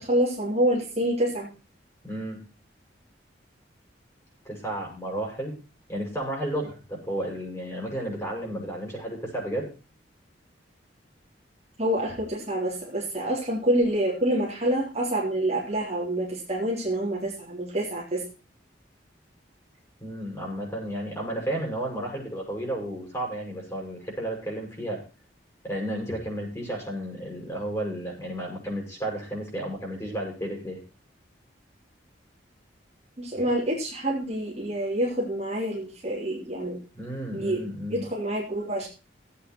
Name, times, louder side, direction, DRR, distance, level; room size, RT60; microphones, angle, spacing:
voice 1, 0.0-1.5 11.8-18.2 33.2-36.8 37.3-37.6 37.9-38.9, right 1 dB, 35° right, -3 dB, 3.4 m, -27 dB
voice 2, 2.0-2.4 4.4-5.6 5.9-9.7 20.0-25.0 25.6-30.8 36.9-38.0, right 1 dB, 15° left, -1 dB, 6.7 m, -32 dB
16.5 x 8.5 x 4.6 m, 0.34 s
head